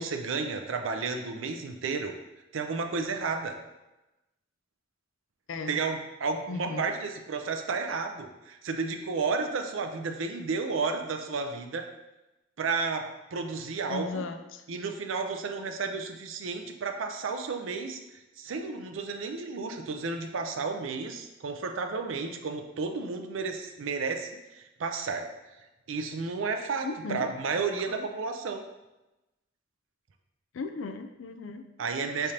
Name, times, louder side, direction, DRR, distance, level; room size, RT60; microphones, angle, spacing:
voice 1, 0.0-2.1 2.5-3.6 5.7-11.9 12.6-14.2 14.7-18.0 18.4-25.3 25.9-28.6 31.8-32.3, right 4 dB, 80° right, 5 dB, 0.5 m, -32 dB
voice 2, 6.5-6.9 13.9-14.6 26.8-27.2 27.9-28.1 30.5-31.7 32.2-32.3, left 4 dB, 80° left, 7 dB, 0.4 m, -36 dB
4.9 x 3.3 x 2.8 m, 1.0 s
head